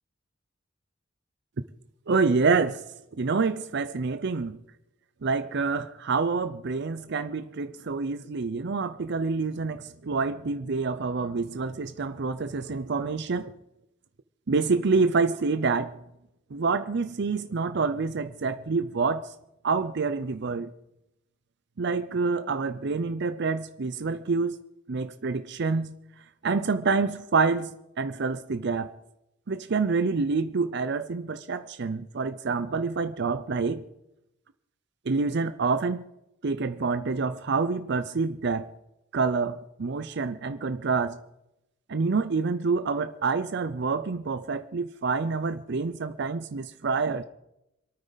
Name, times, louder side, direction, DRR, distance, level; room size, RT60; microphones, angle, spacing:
voice 1, 2.1-2.8 3.2-4.6 5.2-13.5 14.5-15.9 16.5-19.3 19.6-20.7 21.8-24.6 24.9-25.9 26.4-28.9 29.5-33.8 35.1-36.0 36.4-38.7 39.1-41.2 41.9-47.2, right 4 dB, 60° right, 11 dB, 0.6 m, -27 dB
27.0 x 9.2 x 4.0 m, 0.88 s
head